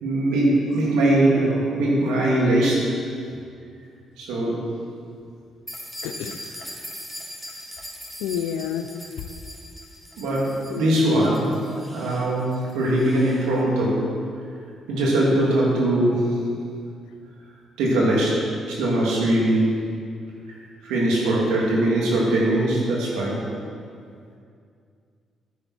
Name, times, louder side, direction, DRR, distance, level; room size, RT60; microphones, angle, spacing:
voice 1, 0.0-2.9 4.2-4.6 10.2-10.4 10.7-11.5 11.9-14.0 14.9-16.2 17.8-18.3 18.7-19.6 20.8-23.4, right 1 dB, 85° right, -4 dB, 2.8 m, -21 dB
sound 1, 5.7-13.4, equal, 5° right, 2.8 m, -40 dB
voice 2, 6.0-6.4 8.2-8.9 10.7-11.0, left 9 dB, 90° left, 9 dB, 0.6 m, -29 dB
11.5 x 10.0 x 4.5 m, 2.3 s
supercardioid pair, 60°, 0 cm